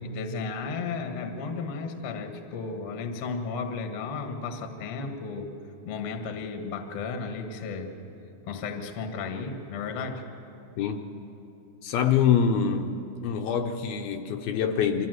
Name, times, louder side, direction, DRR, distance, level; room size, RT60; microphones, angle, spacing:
voice 1, 0.0-5.6 5.8-7.9 8.5-10.2, left 4 dB, 60° left, 5 dB, 1.5 m, -34 dB
voice 2, 11.8-15.1, left 7 dB, 75° left, 5 dB, 2.3 m, -25 dB
24.0 x 14.5 x 7.8 m, 2.9 s
omnidirectional pair, 4.7 m